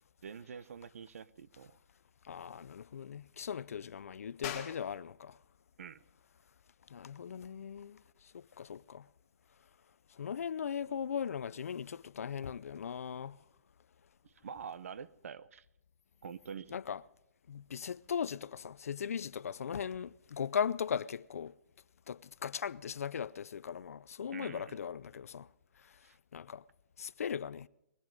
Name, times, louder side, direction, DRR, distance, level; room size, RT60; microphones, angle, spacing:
voice 1, 0.2-1.7 5.8-6.0 14.2-15.6 16.2-16.7 24.3-24.8 26.0-26.2, right 7 dB, 65° right, 0.7 m, -46 dB
voice 2, 2.2-5.4 6.9-8.0 8.3-9.0 10.1-13.4 16.7-17.0 17.5-21.5 22.1-25.5 25.8-25.9 26.3-26.6 27.0-27.7, left 7 dB, 75° left, 0.5 m, -38 dB
sound 1, 4.4-14.7, left 9 dB, 25° left, 1.6 m, -52 dB
20.0 x 13.0 x 5.2 m
hypercardioid pair, 165°, 8 cm